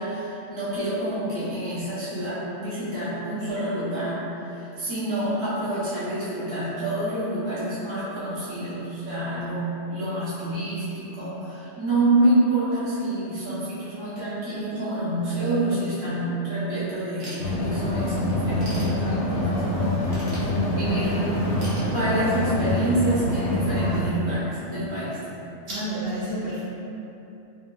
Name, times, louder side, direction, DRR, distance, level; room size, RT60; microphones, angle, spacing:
voice 1, 0.0-21.5 21.8-25.2, right 1 dB, 25° right, -12 dB, 0.8 m, -27 dB
Ratchet pawl / Tools, 17.2-18.0 18.4-19.5 20.1-21.0 21.6-22.6, right 1 dB, 85° right, 1.2 m, -42 dB
sound 1, 17.4-24.1, left 1 dB, 70° left, 0.8 m, -25 dB
voice 2, 25.7-26.6, right 1 dB, 55° right, -12 dB, 1.0 m, -29 dB
2.7 x 2.6 x 2.3 m, 2.8 s
omnidirectional pair, 1.2 m